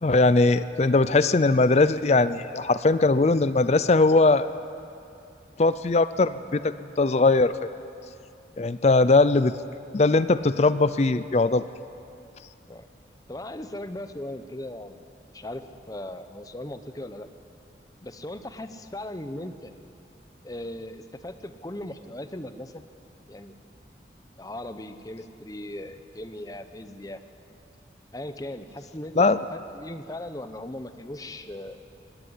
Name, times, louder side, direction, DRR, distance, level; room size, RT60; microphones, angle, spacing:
voice 1, 0.0-4.5 5.6-7.7 8.6-9.5 9.9-11.6 29.1-29.4, left 3 dB, 35° left, 14 dB, 0.4 m, -20 dB
voice 2, 13.3-15.0 15.3-15.6 15.9-17.3 18.0-19.7 20.4-22.7 23.3-23.5 24.4-27.2 28.1-29.3 29.8-31.8, left 1 dB, 20° left, 9 dB, 0.8 m, -38 dB
18.5 x 17.0 x 9.8 m, 2.6 s
head